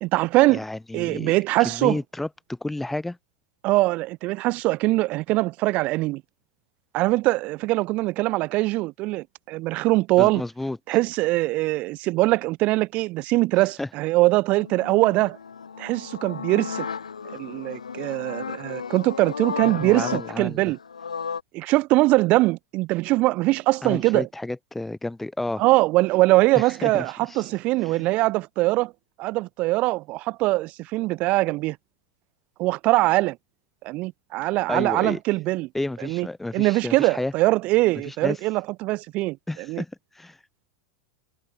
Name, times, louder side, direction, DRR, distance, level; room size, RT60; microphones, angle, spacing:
voice 1, 0.0-0.6 0.9-2.0 3.6-6.2 6.9-10.4 10.9-15.4 15.8-16.9 17.3-20.8 21.5-24.3 25.6-28.9 29.2-31.8 32.6-33.4 33.8-35.7 36.0-36.3 36.5-39.4 39.7-39.8, right 20 dB, 40° right, 1.0 m, -22 dB
voice 2, 0.5-1.3 1.6-3.2 10.2-10.8 13.8-13.9 19.6-20.7 23.8-25.6 26.5-27.5 27.8-28.1 34.7-35.2 35.7-37.3 38.0-38.4 39.5-40.4, left 2 dB, 5° left, 0.8 m, -31 dB
sound 1, 14.6-21.4, left 6 dB, 75° left, 0.7 m, -34 dB
figure-of-eight pair, 85°, 4 cm